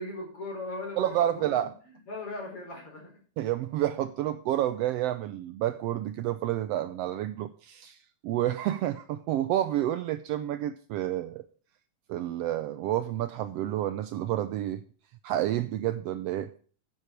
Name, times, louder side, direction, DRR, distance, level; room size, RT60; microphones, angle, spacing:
voice 1, 0.0-1.7 2.1-3.1, left 2 dB, 50° left, -1 dB, 5.7 m, -38 dB
voice 2, 1.0-1.7 3.4-8.0 8.2-11.4 12.1-14.8 15.2-16.5, right 12 dB, 80° right, 11 dB, 1.4 m, -29 dB
10.0 x 8.2 x 4.5 m, 0.42 s
omnidirectional pair, 3.3 m